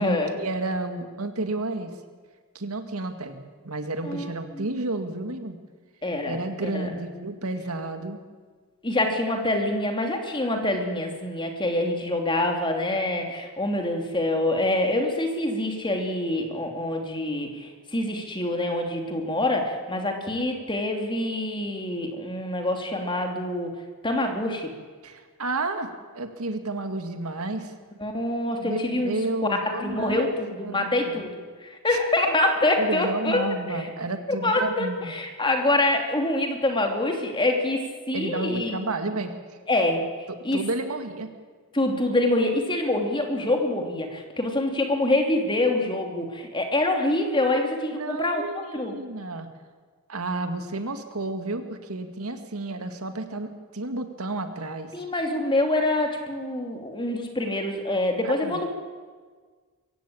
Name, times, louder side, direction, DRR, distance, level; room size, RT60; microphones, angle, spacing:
voice 1, 0.0-1.9 2.5-5.6 6.2-8.2 25.0-27.7 28.6-31.2 31.9-32.0 32.8-35.1 38.1-39.3 40.3-41.3 47.9-49.5 50.1-54.9 58.2-58.6, right 2 dB, 85° right, 7 dB, 2.1 m, -31 dB
voice 2, 4.0-4.7 6.0-6.9 8.8-23.7 24.0-24.7 28.0-29.1 29.5-33.9 34.3-38.8 39.7-40.1 40.4-40.6 41.7-48.4 48.7-48.9 54.9-58.7, left 1 dB, 20° left, 3 dB, 2.9 m, -26 dB
24.0 x 15.5 x 8.8 m, 1.5 s
head